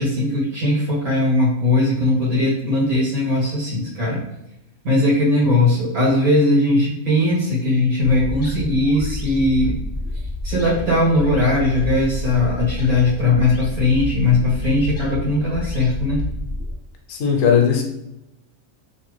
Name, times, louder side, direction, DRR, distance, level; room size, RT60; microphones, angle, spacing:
voice 1, 0.0-4.2 4.8-9.7 10.4-16.2, left 2 dB, 80° right, -8 dB, 2.1 m, -19 dB
sound 1, 8.0-16.7, left 2 dB, 40° left, 0.5 m, -29 dB
voice 2, 17.1-17.8, left 7 dB, 75° left, 2 dB, 1.0 m, -17 dB
3.2 x 2.8 x 3.2 m, 0.84 s
omnidirectional pair, 1.4 m